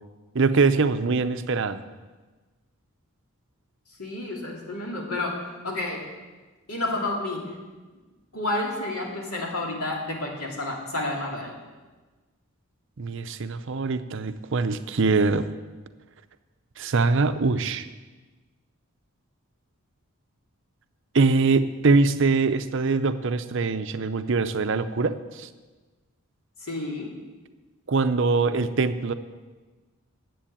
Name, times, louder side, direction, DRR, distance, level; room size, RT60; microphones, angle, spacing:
voice 1, 0.3-1.8 13.0-15.5 16.8-17.9 21.1-25.5 27.9-29.1, right 4 dB, 60° right, 11 dB, 0.6 m, -23 dB
voice 2, 4.0-6.1 6.7-7.6 8.3-11.6 26.6-27.1, left 2 dB, 85° left, -1 dB, 2.8 m, -30 dB
10.0 x 7.8 x 8.7 m, 1.3 s
head